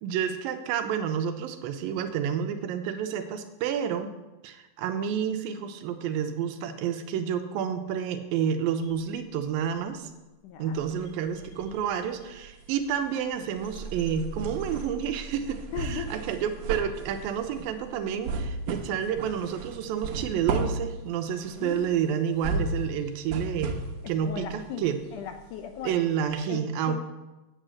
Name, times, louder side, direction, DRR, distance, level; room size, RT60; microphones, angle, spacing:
voice 1, 0.0-4.1 4.4-10.1 10.6-23.8 24.1-25.0 25.8-27.0, right 8 dB, 90° right, 8 dB, 2.6 m, -29 dB
sound 1, 8.8-20.8, right 4 dB, 55° left, 2.5 m, -46 dB
voice 2, 10.4-10.8 15.7-16.1 21.6-21.8 24.2-25.9 26.5-27.0, left 8 dB, 75° left, 6 dB, 2.0 m, -37 dB
sound 2, 10.7-11.9 12.2-25.9 26.3-26.4, right 3 dB, 70° right, 2.3 m, -35 dB
9.1 x 7.8 x 6.3 m, 1.1 s
omnidirectional pair, 4.0 m